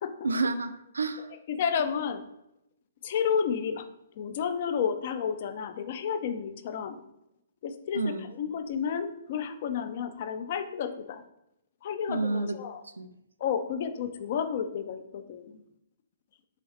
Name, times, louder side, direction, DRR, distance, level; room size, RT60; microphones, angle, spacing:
voice 1, 0.2-1.3 7.9-8.3 12.1-12.6 13.0-13.1, right 3 dB, 80° right, 11 dB, 0.3 m, -29 dB
voice 2, 1.5-2.3 3.0-3.8 4.2-7.0 7.6-11.2 11.8-12.8 13.4-15.6, left 7 dB, 50° left, 9 dB, 0.4 m, -31 dB
3.8 x 2.8 x 3.2 m, 0.82 s
figure-of-eight pair, 125°, 0 cm